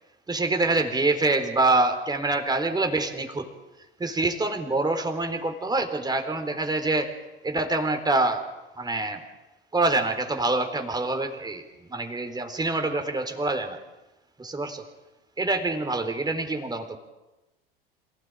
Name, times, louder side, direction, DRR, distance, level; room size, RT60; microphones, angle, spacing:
voice 1, 0.3-3.5 4.0-7.1 7.4-8.4 8.8-9.2 9.7-13.8 14.4-14.8 15.4-17.0, right 2 dB, 15° right, 6 dB, 3.9 m, -26 dB
27.0 x 17.5 x 9.0 m, 1.0 s
figure-of-eight pair, 75°, 29 cm